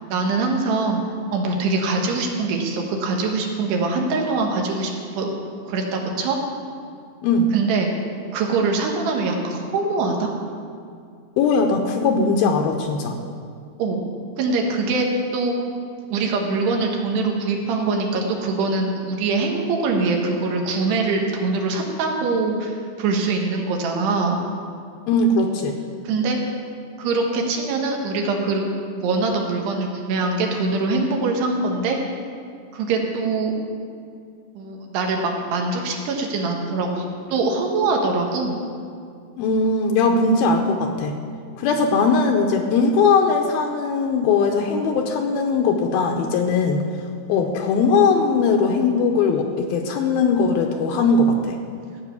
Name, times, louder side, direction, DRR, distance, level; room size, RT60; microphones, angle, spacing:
voice 1, 0.1-1.0 1.3-5.3 5.7-6.4 7.5-7.9 8.3-10.3 13.8-14.1 14.4-15.6 16.1-24.4 26.0-26.4 27.0-32.0 32.7-33.5 34.5-37.0 37.3-38.6, right 3 dB, 80° right, 1 dB, 3.5 m, -23 dB
voice 2, 11.4-13.2 25.1-25.8 39.4-41.2 41.6-46.8 47.3-51.6, left 4 dB, 75° left, 3 dB, 2.4 m, -19 dB
15.5 x 5.8 x 8.2 m, 2.3 s
omnidirectional pair, 4.7 m